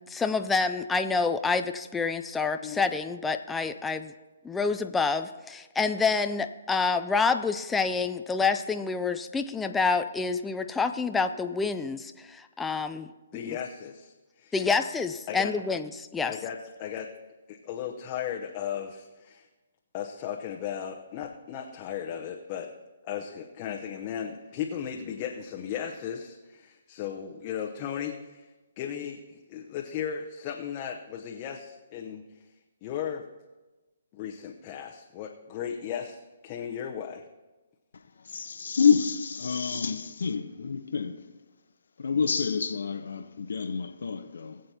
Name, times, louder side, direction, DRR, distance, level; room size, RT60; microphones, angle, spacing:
voice 1, 0.0-4.1 4.4-13.1 13.5-13.6 14.5-16.3, left 4 dB, 10° left, 0.4 m, -28 dB
voice 2, 13.3-14.5 15.3-15.5 16.3-17.1 17.5-19.5 19.9-22.7 23.0-28.5 28.8-32.2 32.8-33.2 34.1-36.2 36.4-37.3, left 8 dB, 30° left, 0.8 m, -36 dB
voice 3, 38.2-41.3 42.0-44.6, left 5 dB, 75° left, 0.8 m, -28 dB
20.5 x 7.7 x 2.8 m
hypercardioid pair, 145°, 0 cm